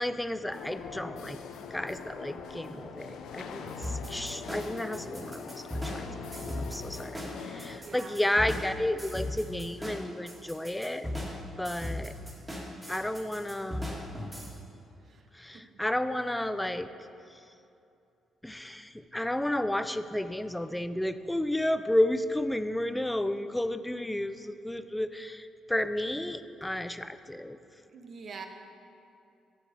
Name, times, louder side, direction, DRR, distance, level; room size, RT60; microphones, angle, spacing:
voice 1, 0.0-1.4 1.7-6.1 6.3-11.1 11.6-12.1 12.9-13.9 15.3-16.9 18.4-27.6, left 1 dB, 5° left, 11 dB, 0.4 m, -32 dB
sound 1, 0.5-7.8, left 5 dB, 80° left, 0.7 m, -42 dB
sound 2, 3.8-14.5, left 1 dB, 15° right, 2.2 m, -38 dB
voice 2, 7.7-8.2 15.0-15.7 27.9-28.5, right 5 dB, 50° right, 5 dB, 1.0 m, -46 dB
8.0 x 7.0 x 7.6 m, 2.7 s
cardioid pair, 90°, 0 cm